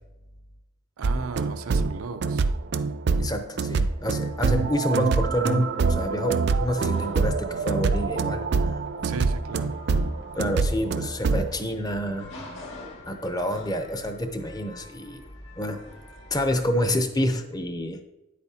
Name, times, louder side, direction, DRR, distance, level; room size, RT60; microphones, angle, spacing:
sound 1, 1.0-11.5, right 4 dB, 50° right, 0.3 m, -25 dB
voice 1, 1.0-2.4 9.0-9.8, right 4 dB, 90° right, 8 dB, 0.6 m, -36 dB
voice 2, 3.2-8.8 10.3-12.3 13.1-15.2 15.6-15.8 16.3-18.0, equal, 20° left, 6 dB, 0.6 m, -28 dB
sound 2, 4.0-17.0, left 1 dB, 60° left, 1.9 m, -44 dB
9.6 x 8.3 x 2.8 m, 1.0 s
head